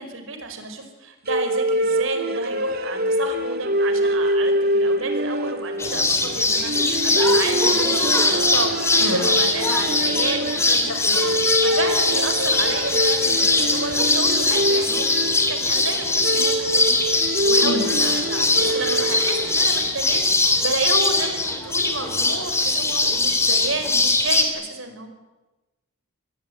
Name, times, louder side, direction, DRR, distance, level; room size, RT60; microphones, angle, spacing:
voice 1, 0.0-17.0 17.4-25.1, right 3 dB, 65° right, 7 dB, 5.2 m, -31 dB
sound 1, 1.3-19.8, right 1 dB, 45° right, 2.0 m, -25 dB
sound 2, 5.8-24.4, left 3 dB, 15° left, 3.4 m, -21 dB
voice 2, 9.0-9.3 10.9-11.4 17.6-18.0, left 1 dB, 70° left, 7 dB, 5.4 m, -28 dB
26.5 x 21.0 x 9.6 m, 1.1 s
head